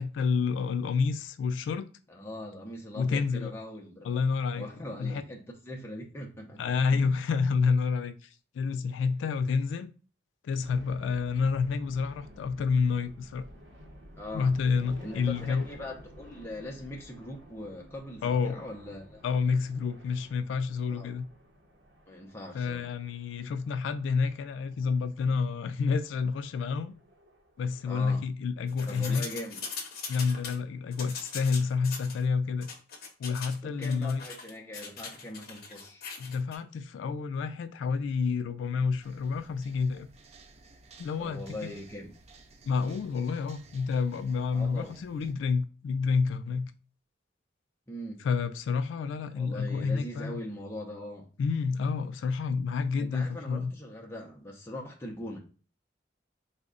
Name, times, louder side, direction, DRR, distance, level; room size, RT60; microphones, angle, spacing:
voice 1, 0.0-1.9 3.0-3.5 4.0-4.7 5.0-5.2 6.6-8.3 8.5-9.9 10.4-13.5 14.3-15.7 18.2-18.6 19.2-21.3 22.5-26.9 27.6-29.2 30.1-32.7 33.2-34.2 36.2-40.1 41.0-41.7 42.6-46.7 48.2-50.3 51.4-53.7, left 5 dB, 85° left, 0.3 m, -29 dB
voice 2, 2.1-4.2 4.5-7.1 14.2-14.5 15.0-19.2 20.9-21.1 22.1-22.9 27.8-28.2 28.9-29.6 33.6-36.1 41.2-42.1 44.5-45.0 47.9-48.3 49.4-51.3 53.0-55.4, left 1 dB, 15° left, 0.6 m, -41 dB
sound 1, 10.6-27.8, equal, 70° right, 0.7 m, -52 dB
sound 2, 28.7-30.6 30.9-32.2 32.6-33.6 33.8-36.6, left 5 dB, 55° left, 0.7 m, -41 dB
sound 3, 39.0-45.3, right 3 dB, 35° right, 0.4 m, -55 dB
3.5 x 2.1 x 3.7 m
head